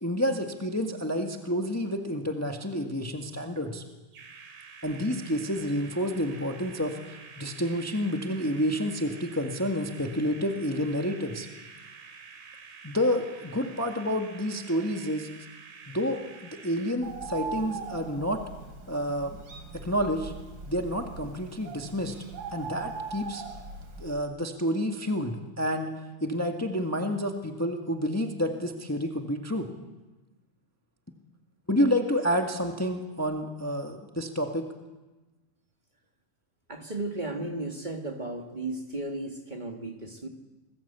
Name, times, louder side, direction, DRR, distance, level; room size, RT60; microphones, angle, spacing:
voice 1, 0.0-3.8 4.8-11.5 12.8-15.3 15.9-18.4 18.9-19.4 19.7-20.3 20.7-22.1 22.5-23.4 24.0-29.7 31.7-34.7, equal, 15° left, 3 dB, 0.5 m, -29 dB
sound 1, 4.1-17.0, right 5 dB, 70° right, 3.9 m, -48 dB
Bird, 17.0-24.1, right 4 dB, 40° right, 3.9 m, -40 dB
voice 2, 36.7-40.3, right 2 dB, 20° right, 3 dB, 1.7 m, -35 dB
28.0 x 21.0 x 8.2 m, 1.2 s
omnidirectional pair, 3.6 m